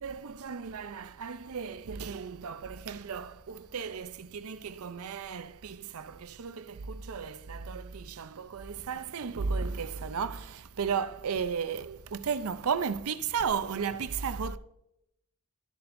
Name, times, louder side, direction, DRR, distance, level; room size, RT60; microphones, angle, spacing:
voice 1, 0.0-14.6, right 6 dB, 80° right, 0.5 m, -34 dB
12.5 x 6.9 x 2.6 m
head